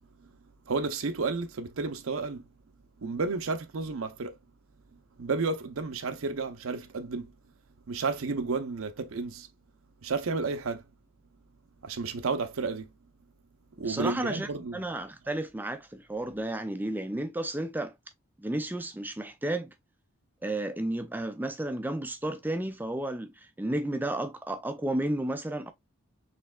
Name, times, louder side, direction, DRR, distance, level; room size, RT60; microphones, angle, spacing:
voice 1, 0.7-2.5 3.0-4.4 5.2-7.3 7.9-9.5 10.0-10.8 11.8-12.9 13.8-14.8, right 4 dB, 75° right, 0.6 m, -32 dB
voice 2, 13.8-17.9 18.4-19.7 20.4-25.7, right 1 dB, 10° right, 0.4 m, -32 dB
4.3 x 3.3 x 2.3 m
head